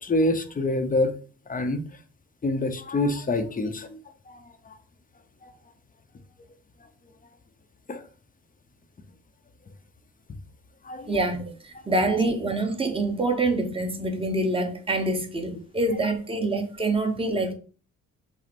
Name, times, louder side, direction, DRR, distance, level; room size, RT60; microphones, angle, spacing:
voice 1, 0.0-1.1 1.5-1.8 2.4-4.0 4.3-4.4 5.4-5.5 7.9-8.0 10.8-11.2 12.1-12.2, left 2 dB, 30° left, 0.7 m, -26 dB
voice 2, 11.1-17.5, right 2 dB, 20° right, 1.1 m, -26 dB
5.9 x 2.1 x 4.2 m
cardioid pair, 90°, 30 cm